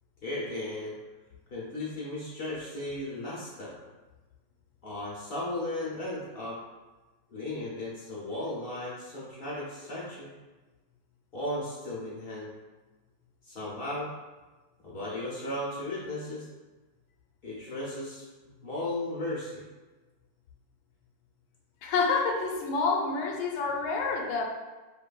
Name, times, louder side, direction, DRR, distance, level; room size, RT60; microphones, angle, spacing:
voice 1, 0.2-0.9 1.5-3.7 4.8-6.6 7.3-10.3 11.3-12.5 13.5-14.1 14.8-16.5 17.4-19.6, left 1 dB, 60° left, -5 dB, 0.6 m, -35 dB
voice 2, 21.8-24.4, left 4 dB, 75° left, 1 dB, 1.4 m, -28 dB
7.2 x 2.6 x 2.3 m, 1.2 s
omnidirectional pair, 2.3 m